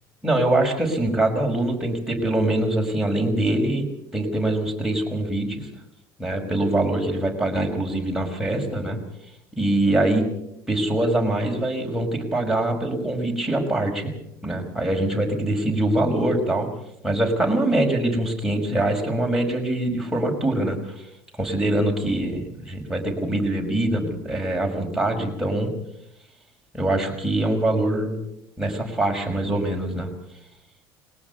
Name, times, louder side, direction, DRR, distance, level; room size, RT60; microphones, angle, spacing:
voice 1, 0.2-3.8 4.1-5.7 6.2-9.0 9.5-10.2 10.7-14.1 14.4-16.7 17.0-21.1 21.4-25.7 26.7-28.2 28.6-30.1, right 1 dB, 5° right, 0 dB, 5.7 m, -23 dB
21.0 x 18.0 x 7.0 m, 0.80 s
hypercardioid pair, 70°, 12 cm